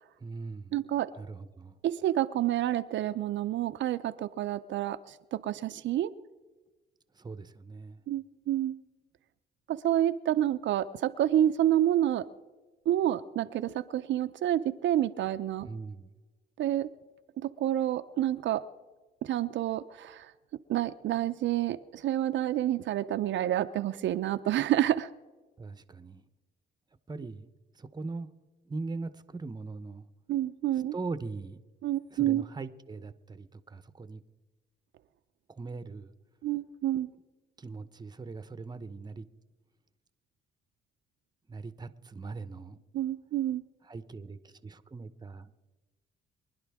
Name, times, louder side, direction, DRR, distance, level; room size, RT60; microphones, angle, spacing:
voice 1, 0.2-0.7 1.2-1.8 7.1-8.0 15.6-16.1 25.6-26.3 27.1-27.5 27.7-28.3 28.6-30.1 30.7-31.6 32.1-34.2 35.5-36.1 37.6-39.3 41.5-42.8 43.8-45.5, right 3 dB, 20° right, 13 dB, 0.8 m, -40 dB
voice 2, 0.7-1.1 1.8-6.1 8.1-8.7 9.7-12.3 12.9-15.7 16.6-16.9 17.4-18.6 19.2-20.3 20.7-25.1 30.3-30.9 31.8-32.4 36.4-37.1 42.9-43.6, right 12 dB, 70° right, 9 dB, 0.5 m, -28 dB
24.0 x 11.0 x 3.5 m, 1.2 s
cardioid pair, 90°, 20 cm